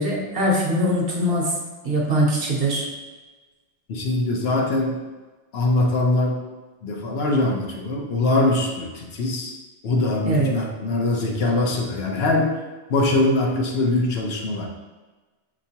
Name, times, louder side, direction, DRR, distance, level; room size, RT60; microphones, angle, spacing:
voice 1, 0.0-1.5 1.8-2.9 10.2-10.5, equal, 60° right, -2 dB, 1.0 m, -22 dB
voice 2, 3.9-5.0 5.5-6.4 6.8-9.5 9.8-12.5 12.9-14.7, left 2 dB, 65° left, 0 dB, 0.9 m, -22 dB
5.6 x 3.0 x 2.8 m, 1.2 s
omnidirectional pair, 1.2 m